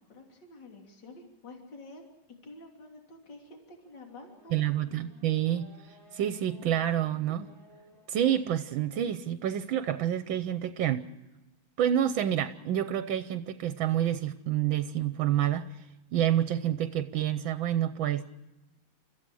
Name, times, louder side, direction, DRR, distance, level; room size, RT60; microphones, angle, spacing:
voice 1, 0.0-2.1 2.4-5.0, left 2 dB, 60° left, 2 dB, 3.6 m, -49 dB
Race car auto racing / Accelerating revving vroom, 3.8-9.0, equal, 30° left, 4.4 m, -57 dB
voice 2, 4.5-7.5 8.1-11.1 11.8-15.8 16.1-18.2, right 11 dB, 70° right, 11 dB, 1.5 m, -28 dB
30.0 x 15.0 x 6.2 m, 1.0 s
omnidirectional pair, 2.2 m